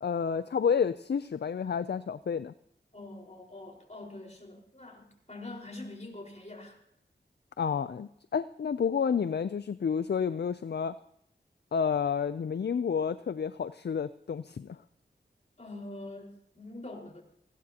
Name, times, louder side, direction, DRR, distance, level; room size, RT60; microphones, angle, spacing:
voice 1, 0.0-2.5 7.6-10.9 11.7-14.8, left 6 dB, 60° left, 14 dB, 0.4 m, -30 dB
voice 2, 2.9-6.8 15.6-17.2, left 2 dB, 35° left, 0 dB, 4.8 m, -44 dB
19.5 x 17.0 x 2.9 m, 0.74 s
cardioid pair, 40°, 20 cm